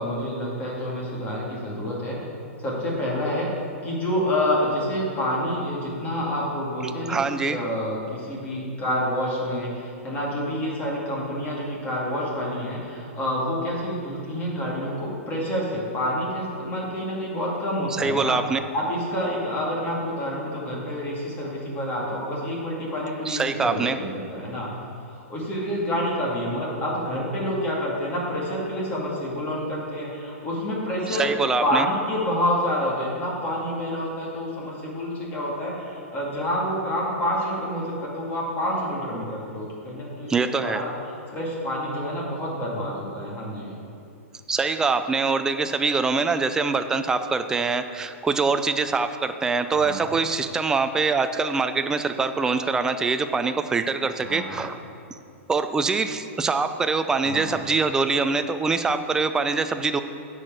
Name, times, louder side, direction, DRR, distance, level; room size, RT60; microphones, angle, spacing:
voice 1, 0.0-2.2 2.6-3.5 3.8-18.4 18.7-24.7 25.1-31.3 31.6-43.7 49.7-50.1 54.2-54.6 57.2-57.6, equal, 20° left, -4 dB, 2.3 m, -28 dB
voice 2, 7.1-7.6 18.0-18.6 23.3-24.0 31.1-31.9 40.3-40.8 44.5-54.8 55.5-60.0, right 4 dB, 10° right, 9 dB, 0.3 m, -24 dB
9.0 x 4.9 x 7.5 m, 2.5 s
hypercardioid pair, 150°, 8 cm